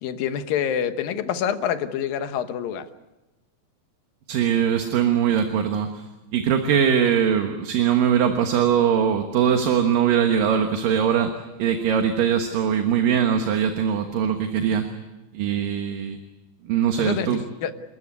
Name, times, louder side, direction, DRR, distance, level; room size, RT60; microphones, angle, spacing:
voice 1, 0.0-2.9 17.0-17.7, left 8 dB, 75° left, 9 dB, 2.9 m, -27 dB
voice 2, 4.3-6.0 6.3-11.3 11.6-14.9 15.3-16.2 16.7-17.4, right 8 dB, 70° right, 5 dB, 3.0 m, -21 dB
30.0 x 14.0 x 9.6 m, 1.1 s
omnidirectional pair, 4.2 m